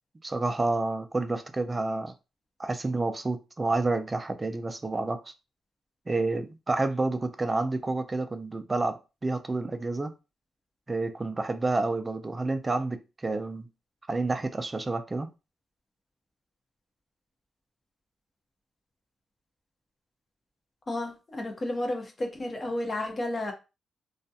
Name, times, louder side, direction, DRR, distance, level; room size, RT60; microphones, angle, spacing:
voice 1, 0.2-2.1 2.6-5.3 6.1-10.1 10.9-13.7 14.1-15.3, right 3 dB, 25° right, 0.3 m, -29 dB
voice 2, 20.9-23.5, left 1 dB, 30° left, 0.7 m, -32 dB
2.3 x 2.1 x 2.7 m
cardioid pair, 105°, 0 cm